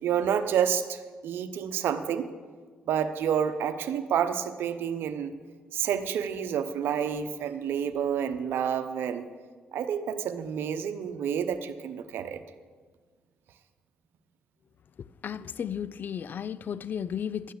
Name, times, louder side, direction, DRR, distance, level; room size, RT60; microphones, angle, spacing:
voice 1, 0.0-2.3 2.9-5.3 5.7-9.2 9.7-12.4, right 8 dB, 70° right, 0.8 m, -29 dB
voice 2, 15.2-17.5, left 8 dB, 55° left, 0.5 m, -34 dB
12.5 x 9.1 x 6.7 m
hypercardioid pair, 50°, 4 cm